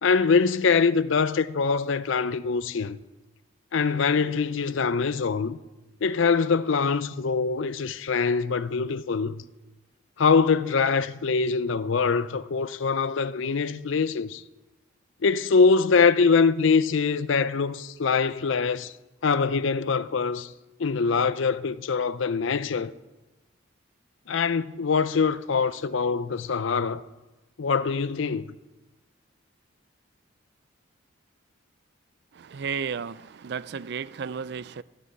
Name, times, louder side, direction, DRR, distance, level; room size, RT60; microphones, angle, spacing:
voice 1, 0.0-3.0 3.7-5.6 6.0-9.4 10.2-14.4 15.2-18.9 19.2-20.5 20.8-22.9 24.3-27.0 27.6-28.5, left 5 dB, 70° left, 0.5 m, -23 dB
voice 2, 32.4-34.8, right 6 dB, 55° right, 0.4 m, -33 dB
13.5 x 6.8 x 9.0 m
head